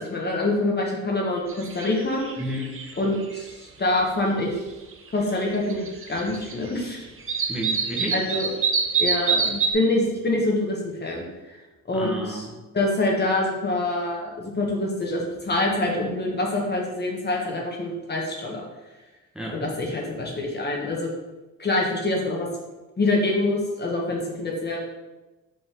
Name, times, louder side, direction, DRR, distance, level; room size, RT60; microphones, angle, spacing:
voice 1, 0.0-2.3 3.0-4.5 5.1-7.0 8.1-8.5 9.0-11.6 11.9-12.4 12.7-18.6 19.5-21.1 21.6-22.5 23.0-24.8, left 2 dB, 35° left, -2 dB, 1.6 m, -25 dB
sound 1, 1.5-1.9 2.2-3.4 4.9-5.0 5.5-6.5 6.8-6.9 7.3-9.7, right 5 dB, 45° right, 0.9 m, -25 dB
voice 2, 2.4-2.8 7.5-8.2 11.9-12.5 19.3-19.6, right 1 dB, 5° right, -3 dB, 1.3 m, -31 dB
5.9 x 5.2 x 3.7 m, 1.1 s
cardioid pair, 90°, 30 cm